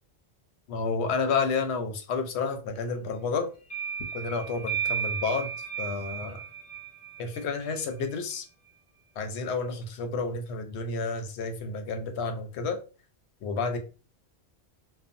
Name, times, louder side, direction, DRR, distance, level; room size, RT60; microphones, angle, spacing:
voice 1, 0.7-3.5 4.1-5.5 5.8-6.4 7.2-8.4 9.2-12.8 13.4-13.8, left 4 dB, 80° left, 6 dB, 0.8 m, -30 dB
sound 1, 3.7-8.1, right 7 dB, 30° left, 0.5 m, -34 dB
2.7 x 2.1 x 2.5 m, 0.35 s
omnidirectional pair, 1.1 m